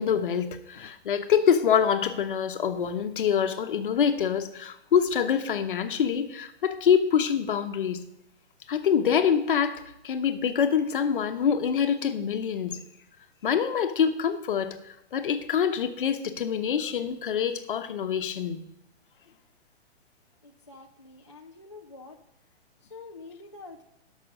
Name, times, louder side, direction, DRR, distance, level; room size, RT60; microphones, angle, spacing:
voice 1, 0.0-8.0 8.7-12.8 13.4-18.6, left 7 dB, 50° left, 8 dB, 1.0 m, -25 dB
voice 2, 20.4-22.2 22.8-23.8, left 3 dB, 25° left, 1 dB, 0.3 m, -46 dB
12.0 x 6.1 x 6.4 m, 0.80 s
hypercardioid pair, 170°, 34 cm